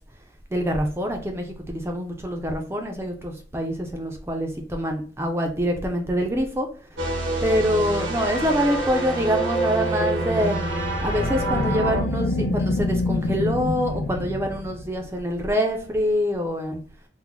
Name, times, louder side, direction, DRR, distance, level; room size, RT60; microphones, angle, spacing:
voice 1, 0.5-6.7 7.4-10.6 11.0-16.8, equal, 15° right, 3 dB, 0.4 m, -25 dB
sound 1, 7.0-12.0, right 1 dB, 80° right, 0.8 m, -26 dB
sound 2, 10.7-15.1, left 2 dB, 65° left, 0.5 m, -27 dB
3.6 x 2.0 x 3.1 m, 0.43 s
head